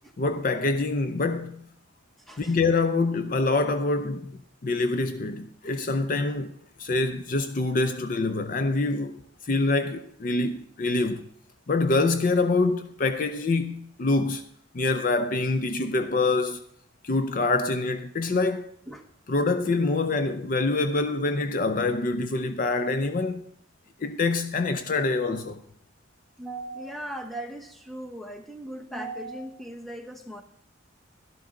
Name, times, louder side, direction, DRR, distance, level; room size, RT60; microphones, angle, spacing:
voice 1, 0.2-1.7 2.4-6.5 6.8-11.3 11.7-14.4 14.7-16.6 17.0-18.7 19.3-23.4 24.0-25.6, left 3 dB, 45° left, 0.5 m, -25 dB
voice 2, 26.4-30.4, right 1 dB, ahead, 1.1 m, -38 dB
12.5 x 11.5 x 3.8 m
head